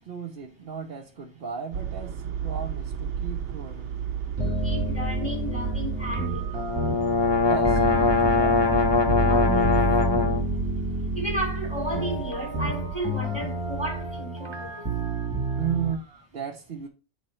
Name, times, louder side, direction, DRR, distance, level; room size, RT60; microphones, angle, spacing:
voice 1, 0.1-3.9 7.4-8.8 15.6-16.9, right 7 dB, 55° right, 0.9 m, -35 dB
sound 1, 1.7-14.2, right 8 dB, 80° right, 1.0 m, -35 dB
sound 2, 4.4-15.9, right 1 dB, 20° right, 1.3 m, -29 dB
voice 2, 4.6-6.7 9.2-9.7 11.1-14.9, right 1 dB, 10° left, 2.7 m, -33 dB
sound 3, 6.5-10.4, left 4 dB, 30° left, 0.5 m, -22 dB
9.6 x 3.4 x 4.3 m
omnidirectional pair, 1.2 m